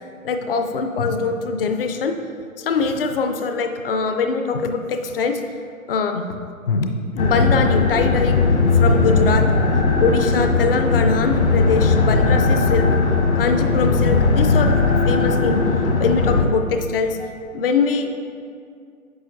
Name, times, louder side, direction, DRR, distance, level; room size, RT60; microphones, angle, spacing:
voice 1, 0.2-2.1 2.6-5.4 5.9-6.3 6.7-8.4 8.7-9.4 10.0-12.9 13.3-15.6 16.0-18.1, left 4 dB, 45° left, 5 dB, 0.4 m, -22 dB
sound 1, 7.2-16.4, left 3 dB, 75° left, 1.3 m, -18 dB
9.6 x 6.2 x 2.6 m, 2.3 s
hypercardioid pair, 150°, 42 cm